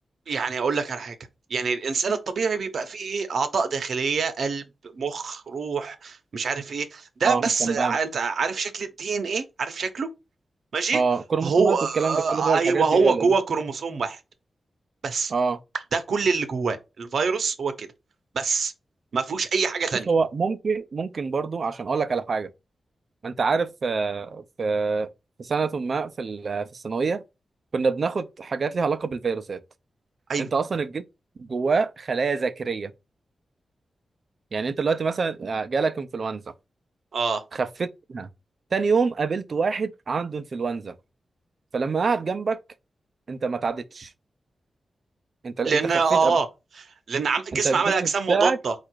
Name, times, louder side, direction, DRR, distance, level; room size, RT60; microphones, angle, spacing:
voice 1, 0.3-1.1 1.5-4.7 4.9-10.1 10.7-11.0 11.4-14.2 15.0-15.3 15.9-17.9 18.3-18.7 19.1-20.1 30.3-30.5 37.1-37.4 45.6-46.5 46.8-48.7, right 5 dB, 65° right, 0.8 m, -25 dB
voice 2, 7.2-8.0 10.9-13.3 15.3-15.6 20.1-22.5 23.2-25.1 25.4-27.2 27.7-29.6 30.4-31.0 31.4-32.9 34.5-36.4 37.5-38.3 38.7-41.0 41.7-42.6 43.3-44.1 45.4-45.8 46.1-46.3 47.6-48.6, right 4 dB, 45° right, 0.5 m, -26 dB
4.7 x 2.5 x 4.5 m
wide cardioid pair, 160°, 0 cm